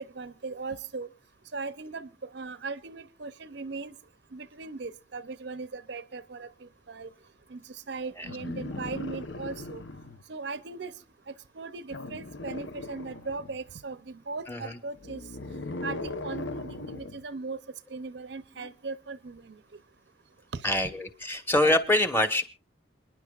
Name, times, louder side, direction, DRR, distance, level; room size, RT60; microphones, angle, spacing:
voice 1, 0.1-1.1 1.5-4.0 4.3-7.1 7.5-9.8 10.3-10.9 11.3-15.2 15.5-17.6 17.9-19.6 20.5-20.7, right 4 dB, 60° right, 0.6 m, -38 dB
sound 1, 8.2-10.2 11.9-13.6 14.9-17.2 18.6-18.7, left 2 dB, 65° left, 0.9 m, -38 dB
voice 2, 20.6-22.5, left 1 dB, 10° left, 1.2 m, -25 dB
28.5 x 10.5 x 2.4 m
head